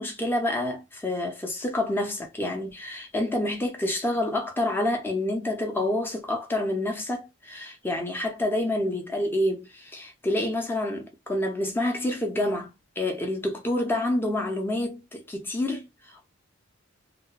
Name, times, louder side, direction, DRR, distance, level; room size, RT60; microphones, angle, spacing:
voice 1, 0.0-16.3, left 1 dB, 10° left, 0.6 m, -28 dB
2.8 x 2.1 x 2.2 m
head